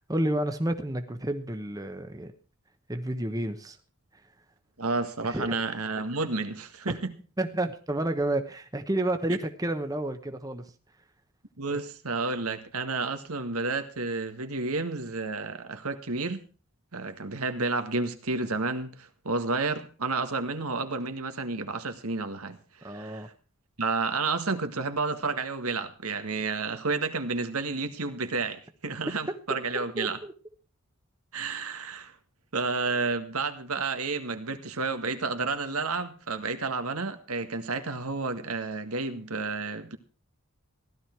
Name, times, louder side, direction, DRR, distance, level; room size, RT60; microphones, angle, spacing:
voice 1, 0.0-2.3 2.9-3.8 5.3-5.6 6.9-7.0 7.4-10.7 22.8-23.3 30.0-30.3, right 1 dB, 15° right, 1.0 m, -30 dB
voice 2, 4.8-7.2 11.6-16.4 16.9-23.3 23.8-30.2 31.3-32.1 32.5-40.0, right 3 dB, 85° right, 1.7 m, -31 dB
16.0 x 12.0 x 4.6 m
head